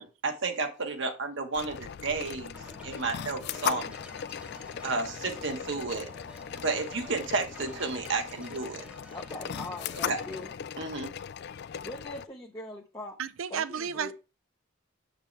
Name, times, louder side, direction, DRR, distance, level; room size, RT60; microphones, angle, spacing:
voice 1, 0.0-2.6 2.8-3.9 4.8-6.1 6.6-8.8 10.1-10.2 10.8-11.1, right 3 dB, 60° right, 1.2 m, -32 dB
sound 1, 1.5-12.3, left 8 dB, 55° left, 0.3 m, -38 dB
sound 2, 2.5-10.5, equal, 5° right, 0.9 m, -50 dB
voice 2, 9.1-10.5 11.8-13.2 13.5-14.1, left 2 dB, 20° left, 0.7 m, -41 dB
voice 3, 13.2-14.1, right 7 dB, 75° right, 0.5 m, -32 dB
7.1 x 6.7 x 3.2 m
head